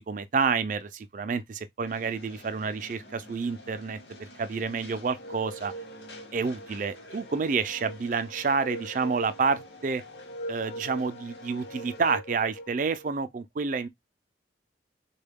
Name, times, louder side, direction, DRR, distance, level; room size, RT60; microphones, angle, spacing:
voice 1, 0.0-5.7 6.3-10.0 10.5-13.9, right 5 dB, 45° right, 0.4 m, -29 dB
sound 1, 1.9-12.1, left 3 dB, 75° left, 1.0 m, -50 dB
sound 2, 5.0-13.1, right 1 dB, 50° left, 0.5 m, -43 dB
3.5 x 2.3 x 3.5 m
head